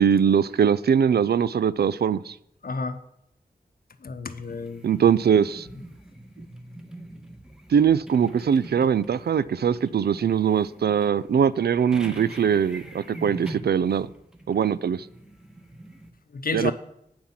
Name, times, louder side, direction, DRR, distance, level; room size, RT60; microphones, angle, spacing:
voice 1, 0.0-2.3 4.8-5.7 7.7-14.1 14.5-15.0 16.5-16.7, right 7 dB, 70° right, 18 dB, 0.4 m, -21 dB
voice 2, 2.6-3.0 4.0-5.1 16.3-16.7, left 4 dB, 60° left, 10 dB, 0.9 m, -31 dB
sound 1, 4.3-16.1, right 1 dB, 5° right, 1.3 m, -43 dB
8.7 x 5.7 x 7.2 m, 0.78 s
cardioid pair, 45°, 17 cm